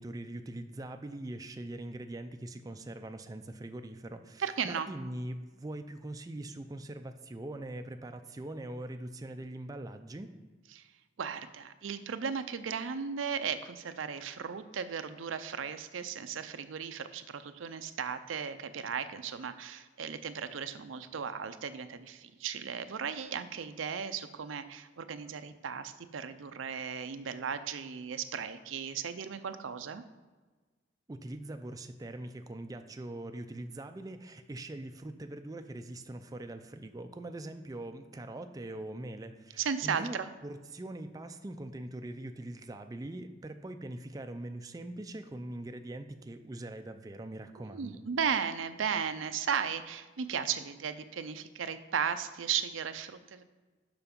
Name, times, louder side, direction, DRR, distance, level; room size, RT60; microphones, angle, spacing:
voice 1, 0.0-10.3 31.1-48.0, right 1 dB, 20° right, 7 dB, 0.3 m, -42 dB
voice 2, 4.4-4.9 10.7-10.9 11.2-30.0 39.6-40.3 47.6-53.4, right 7 dB, 85° right, 10 dB, 0.5 m, -36 dB
6.9 x 5.8 x 5.2 m, 1.3 s
head